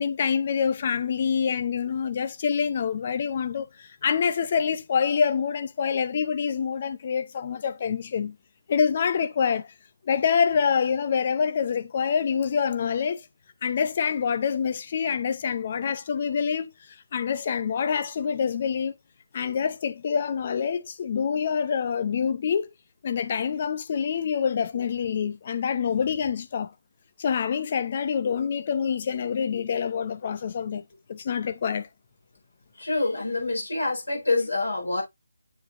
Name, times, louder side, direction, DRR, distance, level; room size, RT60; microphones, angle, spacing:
voice 1, 0.0-8.4 8.7-9.7 10.0-13.2 13.6-16.7 17.1-18.9 19.3-22.7 23.0-26.7 27.2-30.8 31.1-31.9, left 6 dB, 35° left, 0.6 m, -26 dB
voice 2, 32.7-35.0, left 3 dB, 70° left, 4.4 m, -26 dB
7.2 x 6.4 x 2.5 m
figure-of-eight pair, 155°, 0 cm